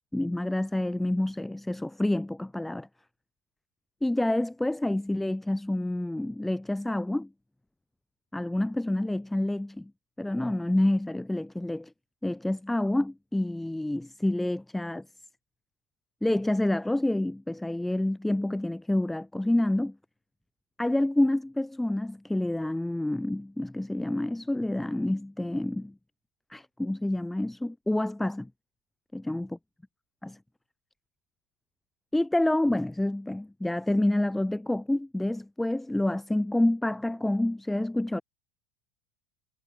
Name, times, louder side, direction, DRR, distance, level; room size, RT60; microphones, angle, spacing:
voice 1, 0.1-2.9 4.0-7.3 8.3-9.9 10.2-11.9 12.2-15.1 16.2-20.0 20.8-25.9 26.5-28.5 29.1-29.5 30.2-30.4 32.1-38.2, left 1 dB, 5° left, 0.4 m, -28 dB
supercardioid pair, 175°, 7 cm